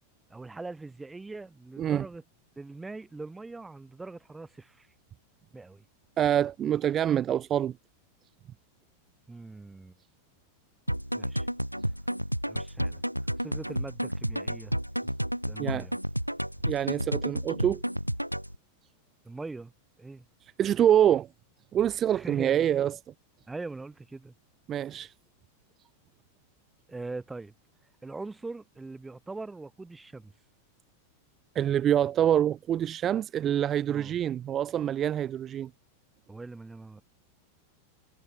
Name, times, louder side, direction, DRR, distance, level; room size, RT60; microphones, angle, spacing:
voice 1, 0.3-2.2 2.6-4.9 5.5-5.8 9.3-10.0 11.1-11.5 12.5-13.0 13.4-14.7 15.5-15.9 19.2-19.7 20.0-20.2 22.1-22.7 23.5-24.3 26.9-27.5 28.0-30.3 33.9-34.2 36.3-37.0, right 3 dB, 10° right, 1.4 m, -41 dB
voice 2, 6.2-7.7 15.6-15.9 16.7-17.8 20.6-21.3 21.7-23.0 24.7-25.1 31.5-35.7, right 10 dB, 30° right, 0.7 m, -26 dB
sound 1, 10.9-18.5, equal, 90° right, 0.4 m, -31 dB
figure-of-eight pair, 90°, 0 cm